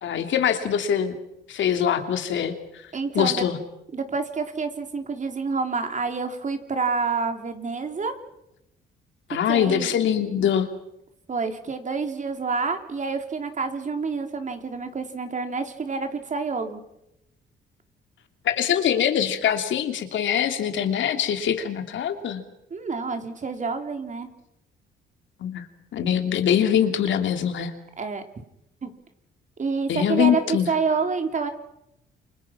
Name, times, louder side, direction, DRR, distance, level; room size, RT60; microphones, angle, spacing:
voice 1, 0.0-1.1 1.5-2.5 3.1-3.6 9.3-10.7 18.4-22.4 25.4-25.6 25.9-27.7 29.9-30.7, left 9 dB, 70° left, 6 dB, 3.0 m, -23 dB
voice 2, 2.9-3.5 3.9-8.1 9.5-9.9 11.3-16.8 22.7-24.3 28.0-28.2 28.8-28.9 29.6-31.5, right 4 dB, 40° right, 6 dB, 3.6 m, -28 dB
29.0 x 25.5 x 6.0 m, 0.83 s
cardioid pair, 90°, 20 cm